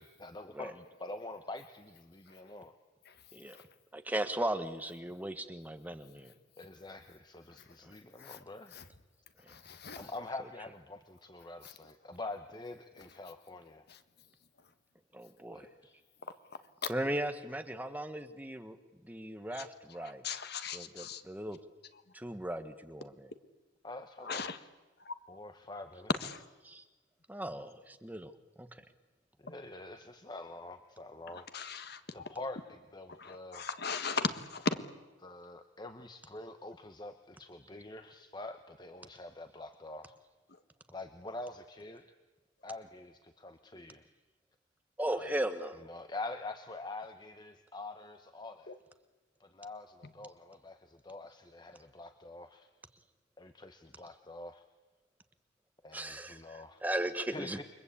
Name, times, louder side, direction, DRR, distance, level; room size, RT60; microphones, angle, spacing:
voice 1, 0.0-2.7 6.6-8.8 9.9-13.9 15.5-16.0 23.8-24.4 25.3-26.1 29.4-31.5 32.1-33.7 35.2-40.1 40.9-42.1 42.6-44.0 45.2-45.4 45.8-48.7 49.4-52.7 53.4-54.6 55.8-56.8 57.3-57.6, left 2 dB, 20° left, 1.0 m, -45 dB
voice 2, 3.0-3.7 6.9-7.0 7.6-7.8 8.1-8.9 9.5-10.1 11.6-11.7 13.2-13.3 13.9-14.0 14.6-14.7 16.2-16.6 19.5-21.2 21.9-22.1 24.2-24.6 25.0-25.1 26.1-26.5 31.3-32.3 33.1-34.8 40.5-40.6 48.7-48.8, left 4 dB, 55° left, 1.5 m, -39 dB
voice 3, 3.9-6.3 7.8-7.9 9.4-9.6 15.1-15.7 16.9-18.8 19.0-20.2 20.7-21.6 22.1-23.3 26.6-26.9 27.3-28.3 28.6-28.7 45.0-45.8 55.9-57.6, right 1 dB, 10° right, 1.2 m, -37 dB
29.0 x 23.5 x 8.6 m
head